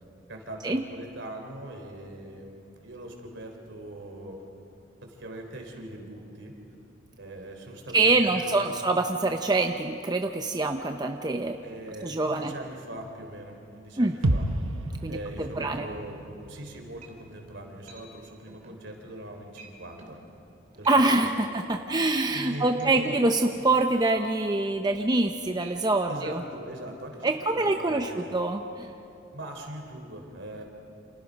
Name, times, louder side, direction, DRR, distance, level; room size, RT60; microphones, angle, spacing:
voice 1, 0.3-4.4 5.0-6.5 7.2-8.1 8.3-8.7 11.6-14.5 15.1-20.2 20.8-21.0 21.4-21.5 22.3-23.2 26.1-28.4 29.3-30.6, right 1 dB, 65° right, 3 dB, 3.8 m, -41 dB
voice 2, 7.9-11.6 12.0-12.5 14.0-14.1 15.0-15.2 15.6-15.9 20.9-26.4 27.2-28.9, right 2 dB, 20° right, 5 dB, 0.7 m, -25 dB
sound 1, 14.2-18.2 18.5-18.6, right 1 dB, 90° right, 1.1 m, -32 dB
sound 2, 17.0-17.4 17.9-18.1 18.5-18.8 19.1-19.3 19.6-19.7 20.0-20.2 20.7-21.1 21.4-25.3 25.6-25.8 26.2-26.3, right 3 dB, 40° right, 3.6 m, -50 dB
29.0 x 28.0 x 5.3 m, 2.8 s
head